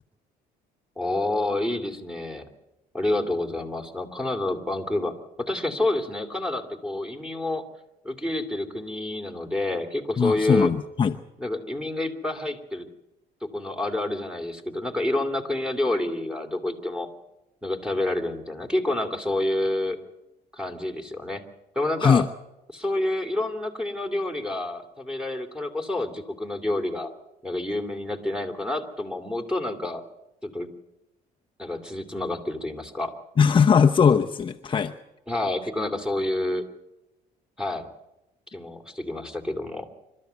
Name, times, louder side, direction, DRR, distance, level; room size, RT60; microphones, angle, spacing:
voice 1, 1.0-2.5 2.9-7.6 8.0-10.7 11.4-12.9 13.4-17.1 17.6-20.0 20.5-21.4 21.7-22.3 22.7-27.1 27.4-30.0 30.4-30.7 31.6-33.1 35.3-36.6 37.6-37.9 38.5-39.9, left 2 dB, 5° right, 5 dB, 2.8 m, -28 dB
voice 2, 10.2-11.2 22.0-22.3 33.4-34.9, left 6 dB, 30° left, 4 dB, 0.8 m, -20 dB
26.5 x 13.5 x 8.2 m, 0.94 s
cardioid pair, 110°, 17 cm